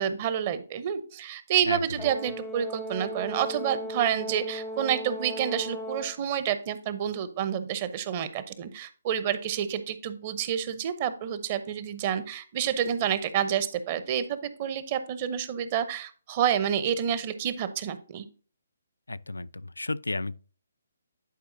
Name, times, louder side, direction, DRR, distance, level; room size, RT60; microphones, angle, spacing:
voice 1, 0.0-18.3, right 9 dB, 30° right, 0.7 m, -29 dB
Brass instrument, 2.0-6.2, equal, 10° left, 0.5 m, -37 dB
voice 2, 19.1-20.4, left 2 dB, 75° left, 0.3 m, -32 dB
10.0 x 4.8 x 2.6 m
figure-of-eight pair, 140°, 0 cm